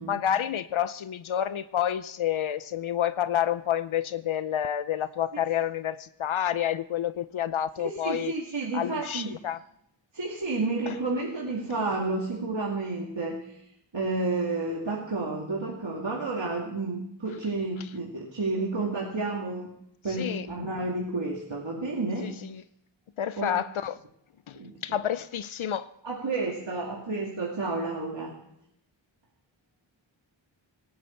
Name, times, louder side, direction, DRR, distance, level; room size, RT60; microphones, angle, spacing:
voice 1, 0.1-8.3 8.7-9.6 10.9-11.0 20.1-20.5 22.2-22.6 23.2-24.0 24.5-25.9, left 10 dB, 85° left, 0.6 m, -29 dB
voice 2, 7.8-9.4 10.1-13.4 13.9-19.7 20.0-22.3 23.4-23.6 24.5-24.7 26.0-28.4, right 3 dB, 65° right, 2.4 m, -31 dB
18.5 x 16.0 x 4.5 m
wide cardioid pair, 55°, 47 cm